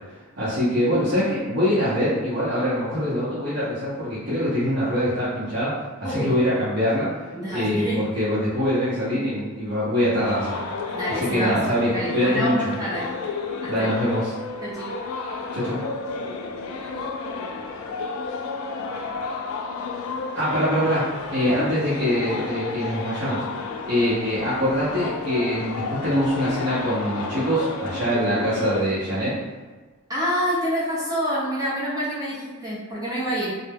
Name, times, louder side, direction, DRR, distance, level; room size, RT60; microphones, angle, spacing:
voice 1, 0.3-7.2 7.5-10.6 11.2-12.7 13.7-14.3 15.5-15.8 20.3-23.4 23.8-29.4, equal, 50° right, -11 dB, 0.7 m, -24 dB
voice 2, 6.0-6.3 7.3-8.1 10.9-11.6 11.9-13.1 13.6-13.9 14.6-14.9 30.1-33.5, equal, 15° right, -8 dB, 0.6 m, -27 dB
sound 1, 10.2-28.8, left 4 dB, 85° left, 0.3 m, -31 dB
2.1 x 2.1 x 3.3 m, 1.3 s
head